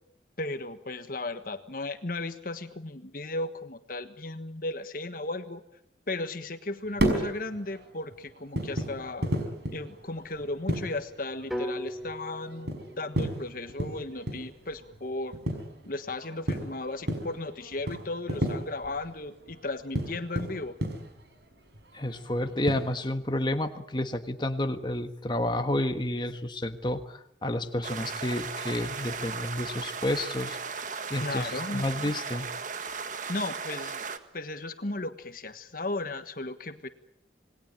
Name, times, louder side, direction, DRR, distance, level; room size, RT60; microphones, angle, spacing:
voice 1, 0.4-5.6 6.1-9.3 9.7-12.7 13.0-15.4 15.9-20.7 31.1-31.9 33.3-34.0 34.3-36.9, left 2 dB, 50° left, 10 dB, 1.5 m, -35 dB
sound 1, 6.8-23.0, right 1 dB, 65° right, 5.5 m, -34 dB
sound 2, 11.5-15.6, equal, ahead, 2.9 m, -40 dB
voice 2, 21.9-30.6 31.1-32.5, left 1 dB, 25° left, 7 dB, 1.5 m, -30 dB
sound 3, 27.8-34.2, right 5 dB, 45° right, 1.7 m, -36 dB
27.5 x 20.5 x 8.9 m, 0.72 s
head